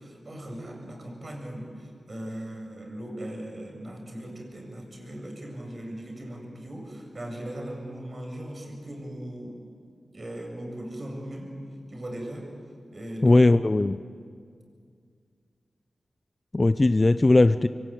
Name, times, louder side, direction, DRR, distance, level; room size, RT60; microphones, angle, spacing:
voice 1, 0.0-9.6 10.1-11.5 11.9-12.5 12.9-13.4, right 1 dB, 45° right, 2 dB, 7.3 m, -38 dB
voice 2, 13.2-14.0 16.5-17.7, left 2 dB, 35° left, 12 dB, 0.6 m, -19 dB
26.5 x 24.0 x 9.3 m, 2.2 s
cardioid pair, 60°, 0 cm